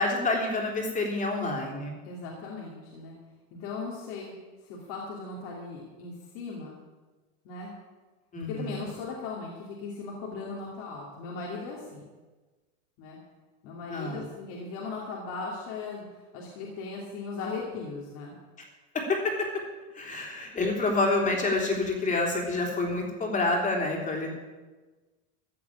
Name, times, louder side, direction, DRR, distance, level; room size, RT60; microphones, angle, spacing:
voice 1, 0.0-1.9 8.3-8.8 13.9-14.2 18.9-19.5 19.9-24.3, left 2 dB, 25° left, 1 dB, 3.3 m, -28 dB
voice 2, 2.0-3.1 3.6-4.3 4.6-6.8 7.4-7.7 8.5-12.0 13.0-13.2 13.6-16.1 16.3-18.4, left 4 dB, 65° left, -3 dB, 3.0 m, -38 dB
15.0 x 7.2 x 8.6 m, 1.3 s
supercardioid pair, 140°, 32 cm